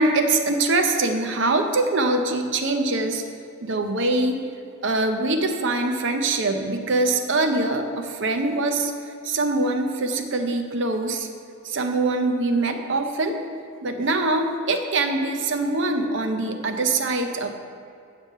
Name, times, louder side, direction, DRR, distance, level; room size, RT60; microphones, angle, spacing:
voice 1, 0.0-3.2 3.6-4.4 4.8-8.9 9.2-11.3 11.6-13.4 13.8-17.6, right 2 dB, 60° right, 6 dB, 0.7 m, -23 dB
9.0 x 5.0 x 6.5 m, 2.4 s
head